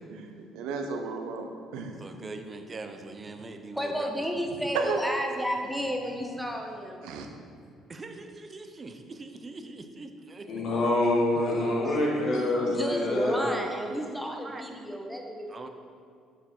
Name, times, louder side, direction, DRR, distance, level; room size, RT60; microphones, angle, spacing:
voice 1, 0.1-2.1 4.7-5.0 7.0-7.3, right 5 dB, 80° right, 4 dB, 0.9 m, -33 dB
voice 2, 2.0-4.7 7.9-10.5 14.3-14.6 15.5-15.7, right 3 dB, 35° right, 6 dB, 0.8 m, -42 dB
voice 3, 3.7-7.0 11.6-12.2 12.7-15.7, equal, ahead, 1 dB, 1.2 m, -32 dB
voice 4, 10.4-13.4, left 1 dB, 60° left, -3 dB, 1.9 m, -26 dB
6.9 x 6.6 x 4.5 m, 2.3 s
supercardioid pair, 70°, 0 cm